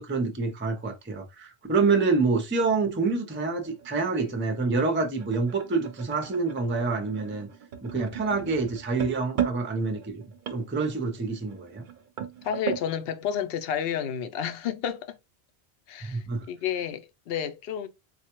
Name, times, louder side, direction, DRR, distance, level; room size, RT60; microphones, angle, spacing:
voice 1, 0.0-7.5 7.8-10.2 10.5-11.8 16.0-16.5, right 4 dB, 15° right, 0.4 m, -27 dB
sound 1, 3.1-12.9, right 9 dB, 55° right, 0.7 m, -37 dB
voice 2, 12.4-15.2 15.9-17.9, left 8 dB, 70° left, 0.8 m, -31 dB
4.1 x 2.2 x 2.9 m
omnidirectional pair, 1.1 m